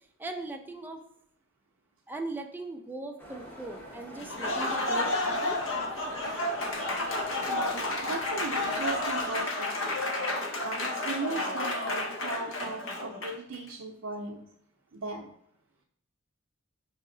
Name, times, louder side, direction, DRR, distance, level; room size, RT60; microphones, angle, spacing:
voice 1, 0.2-1.0 2.1-5.6, right 2 dB, 10° right, 4 dB, 0.4 m, -39 dB
sound 1, 3.2-9.4, equal, 10° left, 0.8 m, -46 dB
Applause, 4.2-13.5, left 2 dB, 65° left, 0.7 m, -31 dB
voice 2, 7.5-10.0 10.6-14.4 14.9-15.3, right 3 dB, 80° right, -1 dB, 0.5 m, -37 dB
5.0 x 2.8 x 3.7 m, 0.73 s
head